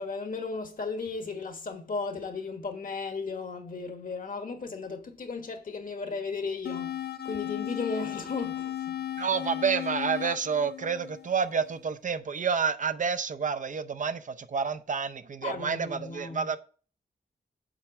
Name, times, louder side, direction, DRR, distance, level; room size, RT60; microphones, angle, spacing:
voice 1, 0.0-9.1 15.4-16.4, left 4 dB, 55° left, 1.3 m, -35 dB
sound 1, 6.7-11.7, left 11 dB, 80° left, 0.6 m, -35 dB
voice 2, 9.2-16.6, right 6 dB, 50° right, 0.5 m, -29 dB
7.5 x 4.6 x 5.8 m
wide cardioid pair, 145°, 17 cm